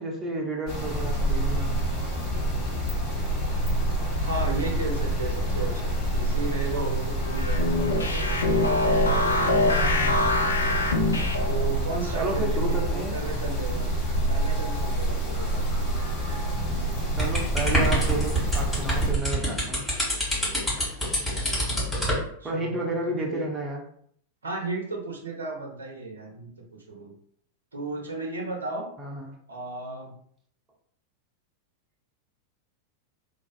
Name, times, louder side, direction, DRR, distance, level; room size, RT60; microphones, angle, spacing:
voice 1, 0.0-1.7 9.8-10.2 12.1-13.2 17.2-19.8 22.4-23.8 29.0-29.3, right 1 dB, 20° right, 0 dB, 0.5 m, -31 dB
sound 1, 0.7-19.1, right 1 dB, 40° left, 0.9 m, -27 dB
voice 2, 4.2-7.8 8.1-9.7 11.4-13.9 14.3-15.6 21.0-21.6 22.4-23.4 24.4-26.5 26.9-27.1 27.7-28.9 29.5-30.1, right 3 dB, 75° right, 0 dB, 0.6 m, -34 dB
sound 2, 7.2-11.7, left 2 dB, 70° left, 0.3 m, -24 dB
sound 3, 17.2-22.2, equal, 5° left, 1.3 m, -26 dB
2.4 x 2.3 x 2.3 m, 0.64 s
figure-of-eight pair, 90°, 0 cm